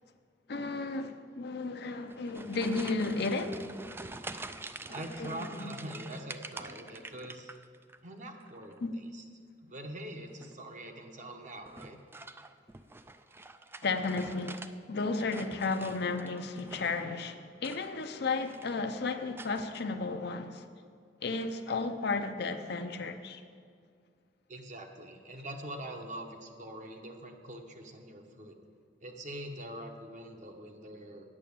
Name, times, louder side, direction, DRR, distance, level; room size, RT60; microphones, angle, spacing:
voice 1, 0.5-3.6 5.0-5.7 8.8-8.9 13.8-20.6 21.2-23.4, left 3 dB, 65° left, 0.6 m, -33 dB
sound 1, 2.0-8.0 8.3-8.9 10.3-10.7 11.7-14.7 15.1-17.1 17.5-18.2 18.4-18.9 19.4-19.8, right 2 dB, 15° right, 0.3 m, -46 dB
voice 2, 4.9-7.5 8.0-8.7 9.1-9.2 9.6-12.0 24.5-28.6 29.0-31.2, right 1 dB, 45° right, 1.0 m, -44 dB
8.9 x 6.9 x 8.5 m
head